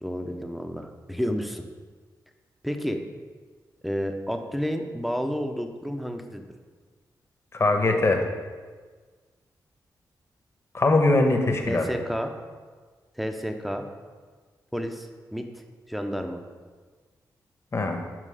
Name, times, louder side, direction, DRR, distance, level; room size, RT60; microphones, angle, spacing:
voice 1, 0.0-1.6 2.6-3.0 3.8-6.4 11.7-12.3 13.2-13.8 14.7-15.6 15.9-16.4, equal, ahead, 5 dB, 0.7 m, -30 dB
voice 2, 7.5-8.2 10.7-11.8 17.7-18.0, left 2 dB, 35° left, 3 dB, 1.1 m, -21 dB
7.7 x 4.8 x 4.9 m, 1.5 s
cardioid pair, 80°, 8 cm